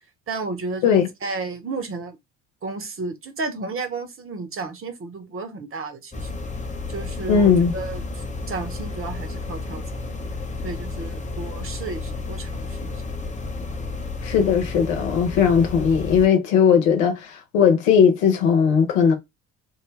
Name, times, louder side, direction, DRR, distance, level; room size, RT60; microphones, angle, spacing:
voice 1, 0.3-2.2 2.6-6.3 6.9-8.0 8.5-10.2 10.6-13.0, right 3 dB, 35° right, 1.1 m, -32 dB
sound 1, 6.1-16.3, left 3 dB, 20° left, 0.8 m, -32 dB
voice 2, 7.3-7.7 14.2-19.1, left 7 dB, 75° left, 1.0 m, -18 dB
3.9 x 2.2 x 3.2 m
hypercardioid pair, 60°, 40 cm